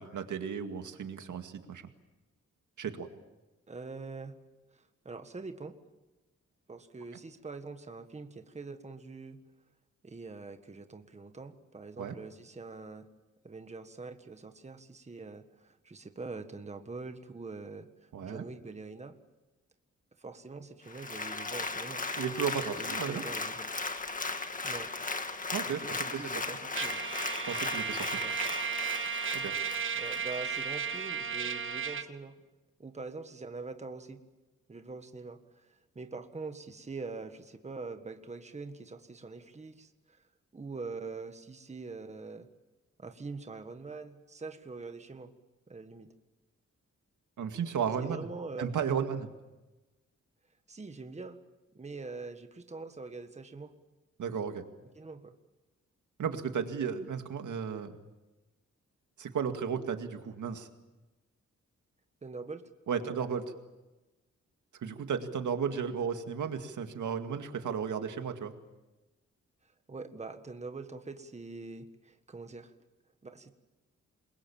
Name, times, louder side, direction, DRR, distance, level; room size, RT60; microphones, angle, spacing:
voice 1, 0.0-1.8 2.8-3.1 12.0-12.2 18.1-18.5 22.2-23.2 25.5-26.5 27.5-28.2 29.3-29.6 47.4-48.3 48.6-49.3 54.2-54.6 56.2-57.9 59.2-60.7 62.9-63.5 64.7-68.5, right 7 dB, 85° right, 6 dB, 2.2 m, -34 dB
voice 2, 3.7-4.4 4.7-5.7 6.7-9.4 10.0-13.0 13.4-17.9 18.2-19.2 20.2-22.0 22.8-23.7 24.6-24.9 25.7-25.9 26.2-27.0 28.2-28.4 29.9-32.4 32.8-34.2 34.7-35.4 35.9-40.2 40.5-42.5 43.0-45.3 45.7-46.1 48.0-48.7 50.7-51.4 51.7-53.7 55.0-55.3 62.2-62.6 62.9-63.1 69.9-72.7 73.2-73.5, right 3 dB, 25° right, 7 dB, 1.6 m, -44 dB
Applause, 20.9-30.6 31.1-31.2, left 3 dB, 25° left, 1.8 m, -37 dB
Trumpet, 26.8-32.1, right 6 dB, 45° right, 1.3 m, -34 dB
28.0 x 22.5 x 7.3 m, 1.1 s
wide cardioid pair, 140°, 29 cm